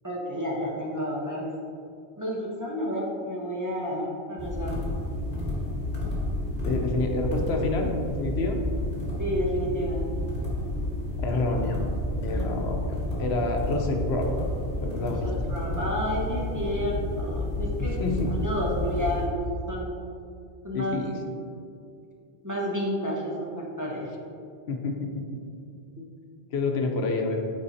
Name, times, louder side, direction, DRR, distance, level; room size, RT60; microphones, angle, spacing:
voice 1, 0.0-1.5 2.2-4.8 9.2-10.0 14.9-18.0 18.3-19.4 19.7-19.9 20.6-21.0 22.4-24.1, equal, 20° right, -5 dB, 0.9 m, -30 dB
sound 1, 4.4-19.3, left 1 dB, 55° left, 1.8 m, -30 dB
voice 2, 6.6-7.9 8.2-8.6 11.2-11.8 12.2-14.3 14.8-15.3 18.0-18.3 20.7-21.2 24.7-25.2 26.0-26.1 26.5-27.4, left 2 dB, 85° left, 2 dB, 1.0 m, -28 dB
8.5 x 4.5 x 2.8 m, 2.4 s
omnidirectional pair, 1.1 m